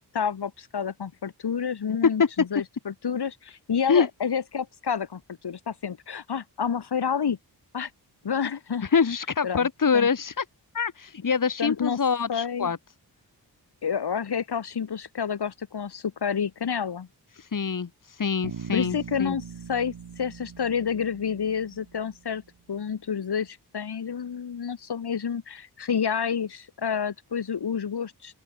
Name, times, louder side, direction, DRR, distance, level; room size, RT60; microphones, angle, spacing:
voice 1, 0.1-7.4 7.7-7.9 8.2-8.9 9.4-9.7 9.9-10.1 11.6-12.0 12.3-12.7 13.8-17.1 18.7-22.4 22.7-28.3, left 7 dB, 75° left, 3.9 m, -29 dB
voice 2, 8.8-10.4 10.7-12.8 17.4-19.4, left 6 dB, 50° left, 2.6 m, -25 dB
Bass guitar, 18.4-22.5, right 7 dB, 80° right, 7.7 m, -42 dB
open air
wide cardioid pair, 105°, 39 cm